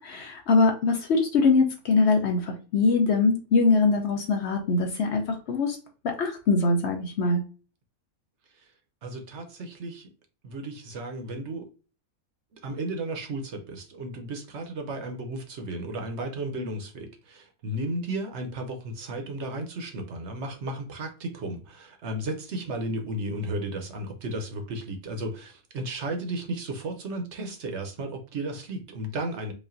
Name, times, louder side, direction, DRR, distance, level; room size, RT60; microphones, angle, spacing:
voice 1, 0.0-5.8 6.0-7.4, left 3 dB, 60° left, 3 dB, 0.8 m, -23 dB
voice 2, 9.0-10.1 10.4-11.7 12.5-29.5, right 1 dB, 60° right, 4 dB, 0.9 m, -34 dB
5.0 x 2.5 x 2.5 m, 0.35 s
omnidirectional pair, 1.5 m